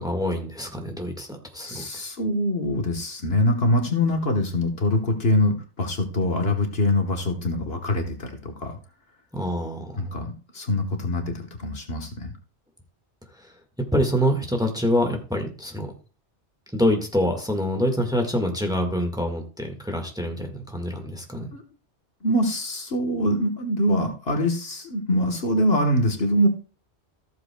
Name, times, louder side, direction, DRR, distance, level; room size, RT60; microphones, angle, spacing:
voice 1, 0.0-1.9 9.3-10.1 13.4-13.5 13.9-15.9 16.7-21.5, equal, 5° right, 3 dB, 1.6 m, -26 dB
voice 2, 1.7-8.8 10.0-12.3 21.5-21.6 22.2-26.5, left 1 dB, 60° left, 4 dB, 1.6 m, -24 dB
14.5 x 7.6 x 2.3 m, 0.36 s
omnidirectional pair, 1.1 m